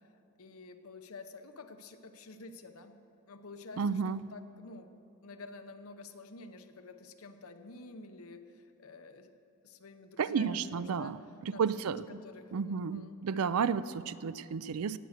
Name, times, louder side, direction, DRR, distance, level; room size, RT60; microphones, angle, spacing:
voice 1, 0.4-3.0 3.3-4.9 5.2-9.3 9.6-11.2 11.5-13.2, left 3 dB, 80° left, 8 dB, 0.9 m, -49 dB
voice 2, 3.8-4.2 10.2-11.2 11.6-12.2 12.5-15.0, right 6 dB, 90° right, 16 dB, 0.4 m, -32 dB
18.0 x 8.0 x 6.6 m, 2.7 s
head